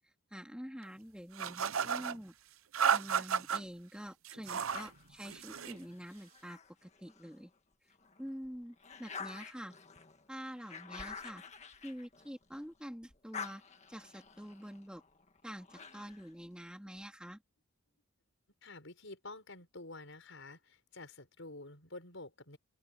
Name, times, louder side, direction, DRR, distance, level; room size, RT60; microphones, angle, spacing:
voice 1, 0.3-2.3 2.9-7.5 8.2-9.7 10.3-11.4 11.8-13.6 13.9-15.0 15.4-17.4, equal, 5° right, 2.9 m, -47 dB
sound 1, 1.4-2.2 2.7-3.6 4.2-4.9 5.2-5.8, right 7 dB, 80° right, 0.8 m, -33 dB
sound 2, 4.7-7.4 7.9-12.7 13.0-16.3, left 5 dB, 30° left, 1.8 m, -49 dB
voice 2, 18.6-22.6, left 2 dB, 65° left, 5.7 m, -49 dB
open air
head